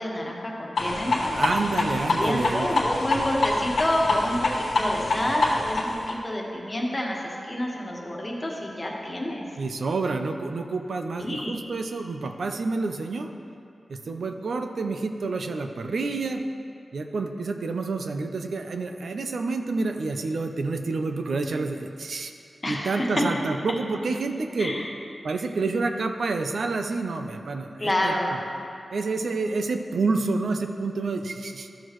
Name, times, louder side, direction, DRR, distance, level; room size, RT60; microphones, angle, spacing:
voice 1, 0.0-1.5 2.2-7.2 7.4-9.4 11.1-11.5 22.6-23.0 24.6-24.8 27.8-28.3, left 1 dB, 25° left, -3 dB, 1.4 m, -28 dB
sound 1, 0.8-6.1, left 2 dB, 85° left, 1.1 m, -26 dB
voice 2, 1.3-2.7 9.6-13.3 13.9-16.4 16.9-22.3 22.7-24.7 25.2-28.1 28.9-31.7, right 3 dB, 80° right, 6 dB, 0.5 m, -28 dB
13.5 x 6.3 x 3.1 m, 2.5 s
wide cardioid pair, 100°, 0 cm